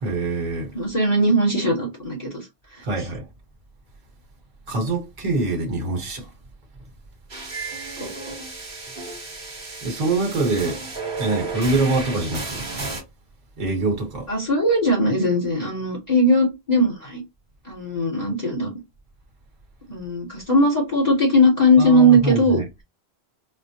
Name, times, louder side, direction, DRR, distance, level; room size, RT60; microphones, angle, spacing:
voice 1, 0.0-0.7 2.8-3.2 4.7-6.3 9.8-10.8 11.2-12.7 13.6-14.3 21.8-22.7, right 2 dB, 40° right, 1.0 m, -24 dB
voice 2, 0.7-2.5 2.7-3.1 8.0-8.1 14.3-17.2 17.6-18.7 19.9-22.6, equal, 40° left, 1.3 m, -19 dB
sound 1, 7.3-13.0, right 3 dB, 60° right, 1.2 m, -33 dB
4.3 x 2.0 x 2.7 m
omnidirectional pair, 1.1 m